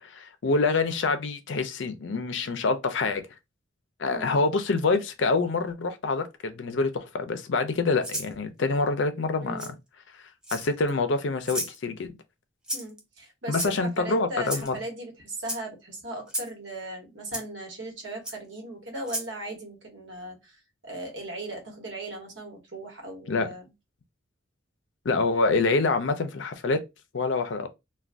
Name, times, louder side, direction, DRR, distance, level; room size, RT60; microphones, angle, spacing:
voice 1, 0.0-3.2 4.0-9.7 10.5-12.1 13.5-14.8 23.3-23.5 25.0-26.8 27.1-27.7, left 3 dB, 65° left, 0.5 m, -26 dB
voice 2, 4.1-4.4 9.4-9.7 12.7-23.6, right 1 dB, 65° right, 1.1 m, -38 dB
Rattle (instrument), 8.0-8.3 9.6-9.7 10.4-10.9 11.4-11.8 12.7-13.0 13.5-14.0 14.4-14.7 15.4-15.6 16.3-16.5 17.3-17.4 18.2-18.4 19.0-19.3, equal, 5° right, 0.4 m, -33 dB
2.5 x 2.2 x 3.3 m
head